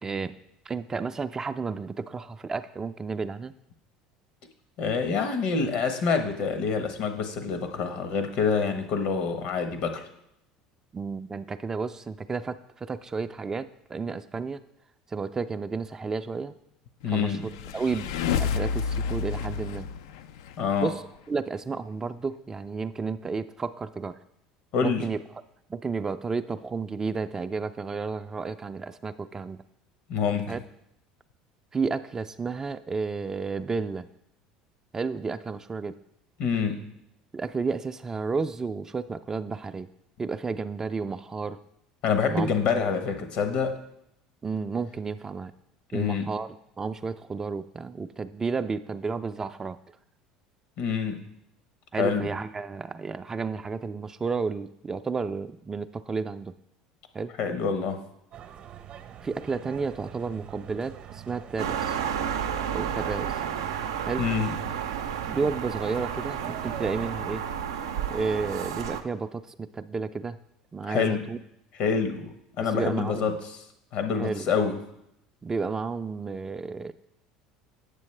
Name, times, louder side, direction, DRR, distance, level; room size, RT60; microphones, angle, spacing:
voice 1, 0.0-0.4 0.7-3.5 10.9-14.6 15.1-16.5 17.1-19.9 20.8-24.2 24.8-25.2 25.7-29.6 30.5-30.6 31.7-34.1 34.9-36.0 37.3-39.9 40.2-41.6 42.3-42.5 44.4-45.5 45.9-46.5 46.8-49.8 51.9-56.5 57.1-57.3 59.2-62.0 62.7-63.4 64.1-64.3 65.3-67.4 68.1-70.4 70.7-71.4 72.6-73.3 74.2-74.5 75.4-76.9, right 4 dB, 25° right, 11 dB, 0.4 m, -32 dB
voice 2, 4.8-10.1 17.0-17.5 20.6-20.9 24.7-25.1 30.1-30.6 36.4-36.9 42.0-43.7 45.9-46.4 50.8-51.3 52.0-52.3 57.4-58.0 64.2-64.6 70.8-71.3 71.8-73.6 73.9-74.8, left 5 dB, 65° left, 7 dB, 1.1 m, -27 dB
sound 1, 17.2-20.8, left 6 dB, 80° left, 0.4 m, -30 dB
sound 2, 58.3-67.1, right 10 dB, 50° right, 0.8 m, -43 dB
sound 3, 61.6-69.0, right 8 dB, 90° right, 0.5 m, -31 dB
8.2 x 6.9 x 3.3 m, 0.79 s
hypercardioid pair, 80°, 2 cm